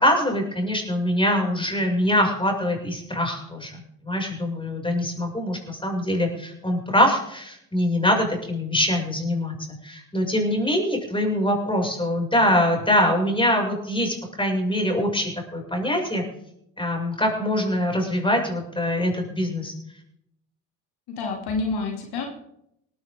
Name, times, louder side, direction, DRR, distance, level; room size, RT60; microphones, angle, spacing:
voice 1, 0.0-9.5 9.8-16.2 16.8-19.7, left 1 dB, 10° left, 1 dB, 6.6 m, -23 dB
voice 2, 21.1-22.3, left 3 dB, 65° left, 2 dB, 2.9 m, -28 dB
18.0 x 15.5 x 3.8 m, 0.77 s
hypercardioid pair, 55°, 41 cm